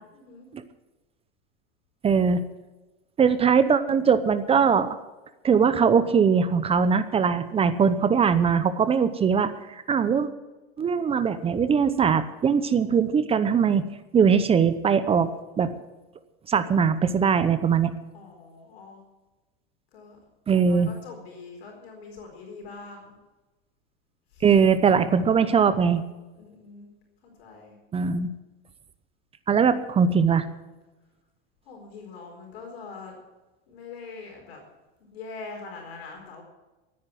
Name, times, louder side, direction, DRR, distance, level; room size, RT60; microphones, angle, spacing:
voice 1, 0.1-0.5 18.1-19.0 19.9-20.2 20.5-23.2 24.3-24.5 26.3-26.9 27.2-27.8 31.7-33.2 33.7-34.6 35.1-36.4, left 4 dB, 85° left, 1 dB, 4.4 m, -43 dB
voice 2, 2.0-2.4 3.2-5.0 5.4-10.3 10.8-13.9 14.1-15.3 15.6-15.7 16.5-17.9 20.5-20.9 24.4-26.0 27.9-28.3 29.5-30.5, right 6 dB, 20° right, 12 dB, 0.8 m, -21 dB
13.5 x 9.6 x 7.7 m, 1.1 s
supercardioid pair, 130°, 30 cm